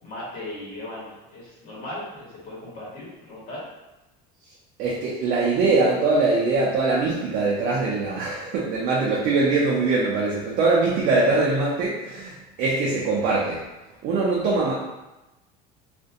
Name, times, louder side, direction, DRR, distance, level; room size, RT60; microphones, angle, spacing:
voice 1, 0.0-3.6, left 1 dB, 50° left, -7 dB, 1.1 m, -37 dB
voice 2, 4.8-13.6 14.0-14.7, right 3 dB, 50° right, -4 dB, 0.4 m, -22 dB
2.4 x 2.1 x 2.6 m, 1.0 s
cardioid pair, 160°, 19 cm